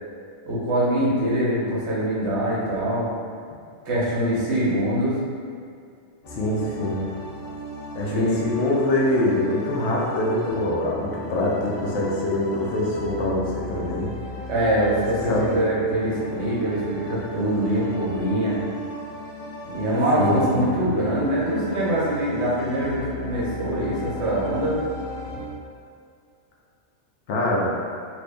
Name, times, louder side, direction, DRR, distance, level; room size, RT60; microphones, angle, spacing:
voice 1, 0.5-3.1 3.9-5.2 8.1-8.4 14.5-18.6 19.6-24.8, right 1 dB, 65° right, -6 dB, 1.1 m, -23 dB
sound 1, 6.2-25.5, right 1 dB, 45° left, 0.8 m, -36 dB
voice 2, 6.3-7.1 7.9-14.1 15.3-15.4 20.2-20.5 27.3-27.8, left 1 dB, 70° left, -4 dB, 0.9 m, -24 dB
2.9 x 2.6 x 3.3 m, 2.3 s
omnidirectional pair, 1.3 m